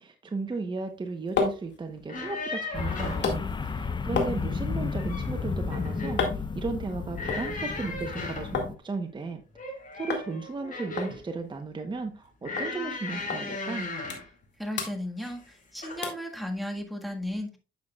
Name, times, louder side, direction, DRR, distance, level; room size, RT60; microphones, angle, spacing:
voice 1, 0.0-13.9, right 3 dB, 25° right, 0.9 m, -35 dB
sound 1, 0.8-8.7 9.1-9.7 10.1-10.3 10.6-10.7 11.0-12.3 12.6-12.7 13.3-13.4 13.8-14.5 14.7-15.6 16.0-16.3 16.8-16.9, left 5 dB, 65° left, 2.0 m, -34 dB
sound 2, 1.9-3.3 4.7-5.4 5.7-6.2 7.1-8.6 9.5-11.2 12.4-14.3 15.2-15.5 15.8-16.0, left 2 dB, 40° left, 4.0 m, -36 dB
sound 3, 2.7-8.7, left 5 dB, 25° left, 0.6 m, -33 dB
voice 2, 14.6-17.6, left 1 dB, ahead, 1.6 m, -35 dB
9.3 x 6.6 x 2.3 m
cardioid pair, 90°, 20 cm